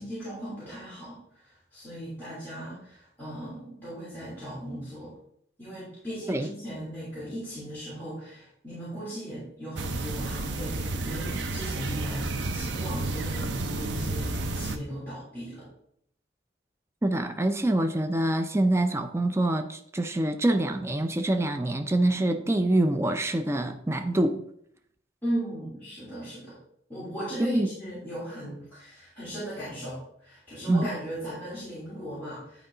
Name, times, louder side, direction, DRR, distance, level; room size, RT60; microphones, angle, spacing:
voice 1, 0.0-5.1 5.6-15.7 25.2-26.5 26.9-32.7, right 1 dB, 10° left, -12 dB, 3.4 m, -37 dB
sound 1, 9.8-14.8, right 2 dB, 70° right, 0.7 m, -31 dB
voice 2, 17.0-24.4 27.5-27.7 30.7-30.9, right 1 dB, 15° right, 7 dB, 0.4 m, -25 dB
10.0 x 4.6 x 3.8 m, 0.70 s
head